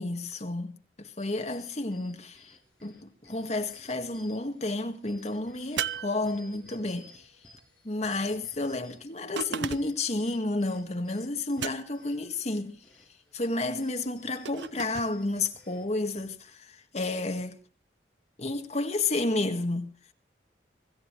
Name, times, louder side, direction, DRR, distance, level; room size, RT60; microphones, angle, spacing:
voice 1, 0.0-2.5 2.8-7.3 7.8-12.8 13.3-17.6 18.4-19.9, left 2 dB, 40° left, 1.8 m, -31 dB
sound 1, 1.2-16.3, left 2 dB, 5° left, 7.4 m, -57 dB
sound 2, 5.8-6.9 9.4-10.1 11.6-12.2 14.4-15.1, right 7 dB, 80° right, 0.7 m, -35 dB
25.5 x 15.0 x 3.2 m
head